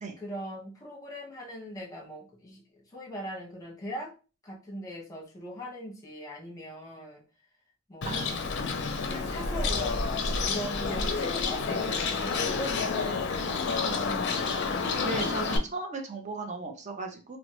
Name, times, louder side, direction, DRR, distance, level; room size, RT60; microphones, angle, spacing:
voice 1, 0.2-2.6 2.9-4.1 4.4-7.2 7.9-8.3 8.6-10.1 10.4-14.7, equal, 15° left, -2 dB, 1.0 m, -40 dB
Bird, 8.0-15.6, left 4 dB, 55° left, 0.4 m, -29 dB
voice 2, 15.0-17.4, right 3 dB, 35° right, 4 dB, 0.6 m, -36 dB
2.9 x 2.1 x 2.9 m, 0.33 s
head